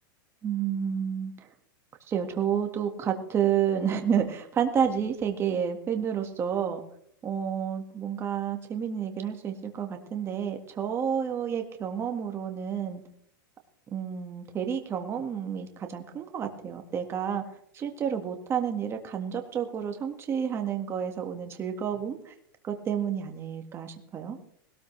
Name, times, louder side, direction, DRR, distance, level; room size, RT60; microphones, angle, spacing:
voice 1, 0.4-1.5 2.1-6.8 7.2-13.0 13.9-17.4 17.7-22.3 22.6-24.4, right 8 dB, 20° right, 5 dB, 1.9 m, -30 dB
20.5 x 18.0 x 3.4 m, 0.69 s
supercardioid pair, 145°, 12 cm